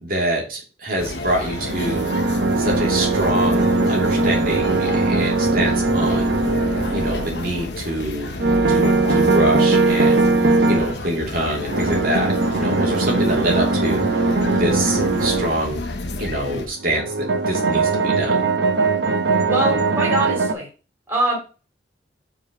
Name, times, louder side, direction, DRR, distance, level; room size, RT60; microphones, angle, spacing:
voice 1, 0.0-2.0 2.6-6.4 6.9-8.4 8.7-14.0 14.5-15.8 16.2-18.4, right 1 dB, 50° right, -1 dB, 2.8 m, -25 dB
sound 1, 1.0-16.7, left 2 dB, 70° left, 1.1 m, -31 dB
sound 2, 1.4-7.6 8.4-10.9 11.7-15.5 16.8-20.5, right 3 dB, 75° right, 0.9 m, -20 dB
voice 2, 19.5-20.7 21.1-21.4, right 1 dB, 15° right, -3 dB, 3.0 m, -23 dB
5.4 x 5.1 x 5.2 m, 0.34 s
head